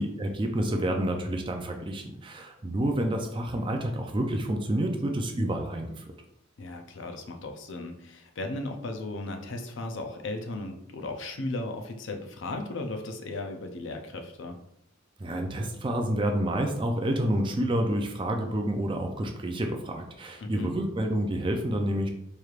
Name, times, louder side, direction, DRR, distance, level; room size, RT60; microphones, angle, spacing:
voice 1, 0.0-6.0 15.2-22.1, right 1 dB, 25° right, 3 dB, 0.4 m, -29 dB
voice 2, 6.6-14.6 20.4-20.8, left 2 dB, 60° left, 5 dB, 0.5 m, -36 dB
4.6 x 3.2 x 2.4 m, 0.79 s
head